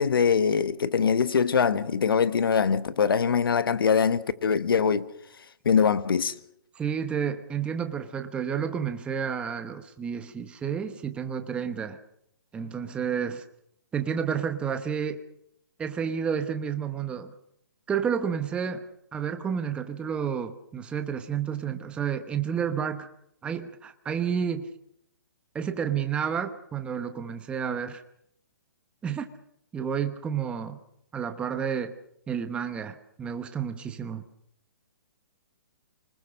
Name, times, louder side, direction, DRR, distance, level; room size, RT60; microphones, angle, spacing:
voice 1, 0.0-5.1 5.6-6.3, left 6 dB, 80° left, 1.3 m, -23 dB
voice 2, 6.7-12.0 12.5-13.4 13.9-15.2 15.8-17.3 17.9-18.8 19.1-23.1 23.4-24.7 25.5-28.0 29.0-29.3 29.7-30.8 31.1-31.9 32.3-34.2, right 7 dB, 10° right, 1.0 m, -30 dB
25.5 x 20.5 x 6.4 m
hypercardioid pair, 160°, 12 cm